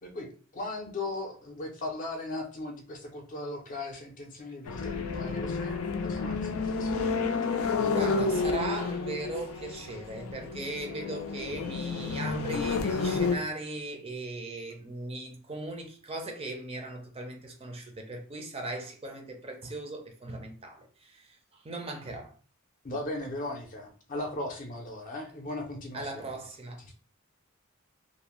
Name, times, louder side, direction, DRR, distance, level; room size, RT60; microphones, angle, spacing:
voice 1, 0.0-7.2 7.7-7.9 22.8-26.2 26.8-26.9, left 2 dB, 40° left, 0.6 m, -38 dB
sound 1, 4.7-13.4, left 4 dB, 90° left, 0.4 m, -30 dB
voice 2, 7.9-22.4 25.9-26.9, right 2 dB, 30° right, 0.5 m, -38 dB
2.5 x 2.1 x 2.9 m
head